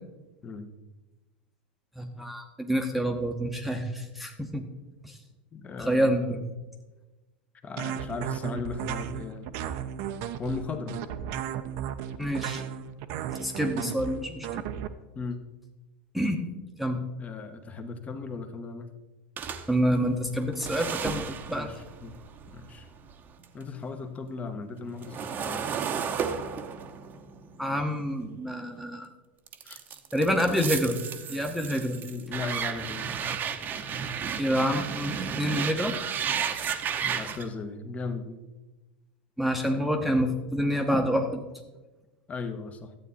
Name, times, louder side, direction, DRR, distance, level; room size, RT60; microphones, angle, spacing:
voice 1, 2.0-4.6 5.0-5.2 5.8-6.4 12.2-12.6 13.4-14.6 16.1-16.4 16.8-17.0 19.7-21.7 27.6-29.1 30.1-31.0 31.3-32.0 34.4-36.0 39.4-41.4, equal, ahead, 4 dB, 1.0 m, -27 dB
voice 2, 5.5-6.4 7.6-9.5 10.4-11.0 13.4-13.5 14.2-14.5 15.1-15.4 17.2-18.9 21.5-22.2 22.5-22.9 23.5-25.7 29.6-29.8 32.0-33.1 37.0-38.4 42.3-42.9, left 4 dB, 25° left, 8 dB, 1.1 m, -37 dB
sound 1, 7.8-14.9, right 9 dB, 55° right, 0.7 m, -34 dB
sound 2, 19.4-23.6 24.0-28.9 29.5-37.5, right 7 dB, 35° right, 0.9 m, -34 dB
12.5 x 8.3 x 4.2 m, 1.1 s
hypercardioid pair, 95°, 6 cm